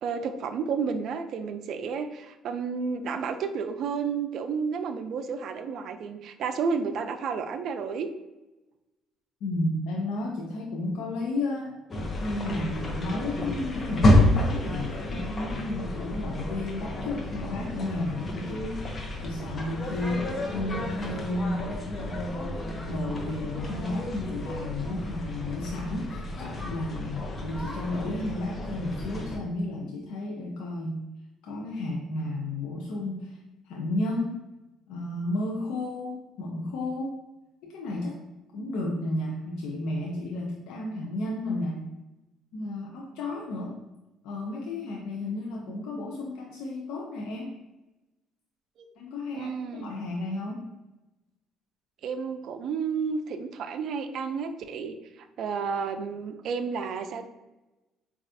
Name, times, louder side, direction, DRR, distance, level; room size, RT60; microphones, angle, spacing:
voice 1, 0.0-8.1 48.8-48.9 49.3-49.9 52.0-57.3, right 5 dB, 65° right, 8 dB, 0.3 m, -31 dB
voice 2, 9.4-11.8 12.2-19.0 19.2-21.6 22.0-31.0 31.4-33.4 33.7-34.4 34.9-37.2 37.6-38.2 38.5-41.9 42.5-43.9 44.2-47.5 49.0-50.6, left 2 dB, 75° left, -1 dB, 0.4 m, -32 dB
sound 1, 11.9-29.4, left 1 dB, 35° left, 0.7 m, -30 dB
4.1 x 2.3 x 2.6 m, 1.0 s
supercardioid pair, 75°, 0 cm